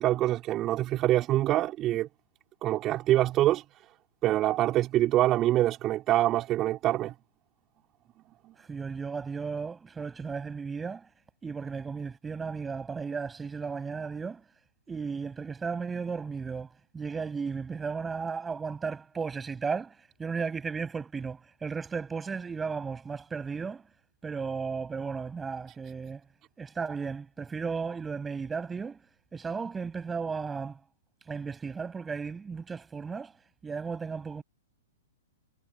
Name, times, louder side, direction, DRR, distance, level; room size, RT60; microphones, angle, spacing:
voice 1, 0.0-2.1 2.6-3.6 4.2-7.1, right 14 dB, 30° right, 3.8 m, -25 dB
voice 2, 8.6-11.1 11.4-14.4 14.9-23.9 24.2-26.2 26.6-29.1 29.3-30.8 31.3-33.3 33.6-34.4, right 5 dB, 15° right, 7.8 m, -35 dB
figure-of-eight pair, 110°, 0 cm